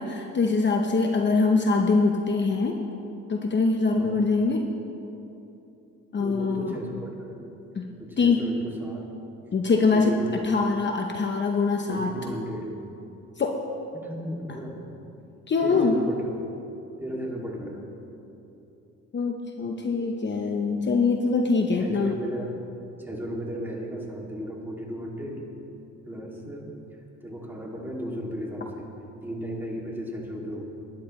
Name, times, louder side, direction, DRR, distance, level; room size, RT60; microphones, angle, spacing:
voice 1, 0.0-2.8 3.3-4.7 6.1-6.8 7.7-7.9 8.2-8.4 9.5-10.2 10.4-12.1 13.4-13.7 15.5-16.0 19.1-22.1, left 4 dB, 35° left, 3 dB, 0.9 m, -23 dB
voice 2, 6.2-7.5 8.0-9.1 9.9-10.3 11.9-12.7 14.0-14.8 15.6-16.3 17.0-17.9 21.8-22.5 23.0-25.4 26.0-26.7 27.2-28.9 29.2-30.6, equal, 5° right, -3 dB, 2.7 m, -35 dB
21.0 x 10.5 x 3.3 m, 2.9 s
cardioid pair, 90°, 30 cm